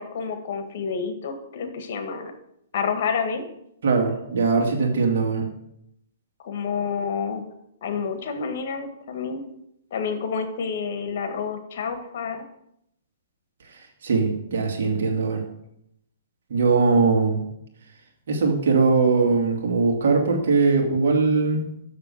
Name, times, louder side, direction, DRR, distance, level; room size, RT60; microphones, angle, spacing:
voice 1, 0.0-2.3 2.7-3.4 6.4-7.4 7.8-9.4 9.9-12.4, left 6 dB, 55° left, 7 dB, 1.7 m, -29 dB
voice 2, 3.8-5.5 14.0-15.4 16.5-17.4 18.3-21.7, right 4 dB, 70° right, 2 dB, 2.5 m, -21 dB
6.9 x 6.7 x 7.5 m, 0.76 s
hypercardioid pair, 150°, 0 cm